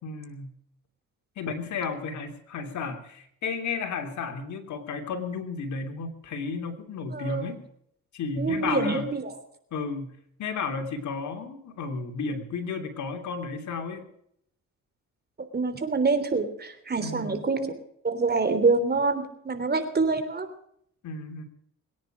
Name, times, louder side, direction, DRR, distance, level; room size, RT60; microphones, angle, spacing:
voice 1, 0.0-0.5 1.4-7.6 8.1-9.1 9.7-10.1 10.4-14.0 17.0-17.4 21.0-21.4, left 4 dB, 70° left, 5 dB, 3.2 m, -33 dB
voice 2, 7.1-7.5 8.4-9.2 15.5-17.7 18.0-20.5, right 4 dB, 35° right, 9 dB, 3.4 m, -26 dB
23.0 x 10.0 x 6.3 m, 0.70 s
cardioid pair, 90°, 30 cm